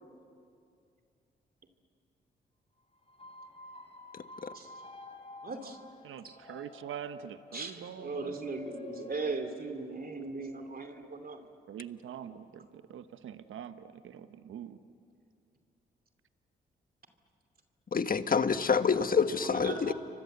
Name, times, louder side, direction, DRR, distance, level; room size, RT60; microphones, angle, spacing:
sound 1, 3.0-9.2, left 3 dB, 30° left, 3.5 m, -50 dB
voice 1, 5.4-5.8 6.2-6.4 7.5-11.5 19.4-19.9, right 3 dB, 45° right, 7 dB, 2.8 m, -38 dB
voice 2, 6.0-8.4 11.7-14.8, right 9 dB, 75° right, 11 dB, 1.2 m, -44 dB
voice 3, 17.9-19.9, left 5 dB, 45° left, 10 dB, 1.5 m, -27 dB
30.0 x 24.5 x 8.0 m, 2.4 s
supercardioid pair, 50°, 21 cm